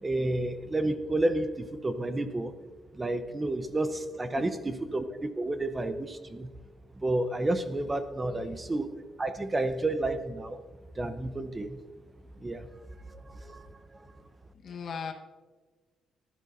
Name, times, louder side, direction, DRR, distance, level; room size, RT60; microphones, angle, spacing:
voice 1, 0.0-2.5 2.9-6.5 6.9-8.9 9.2-10.6 11.0-11.8 12.4-12.7 13.1-13.8, right 2 dB, 20° right, 10 dB, 0.7 m, -31 dB
voice 2, 4.3-4.7 8.3-8.8 14.6-15.1, left 6 dB, 55° left, 4 dB, 1.1 m, -40 dB
13.5 x 11.5 x 2.6 m, 1.4 s
cardioid pair, 90°, 0 cm